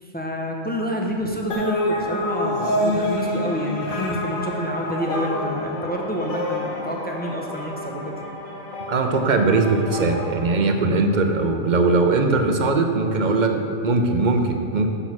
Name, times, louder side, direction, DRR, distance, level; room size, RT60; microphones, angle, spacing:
voice 1, 0.0-8.1, equal, 10° left, -1 dB, 0.5 m, -28 dB
sound 1, 1.5-11.3, left 1 dB, 85° left, 1.5 m, -28 dB
voice 2, 8.9-14.9, right 3 dB, 50° right, 5 dB, 0.6 m, -20 dB
6.8 x 6.2 x 5.9 m, 2.3 s
omnidirectional pair, 1.4 m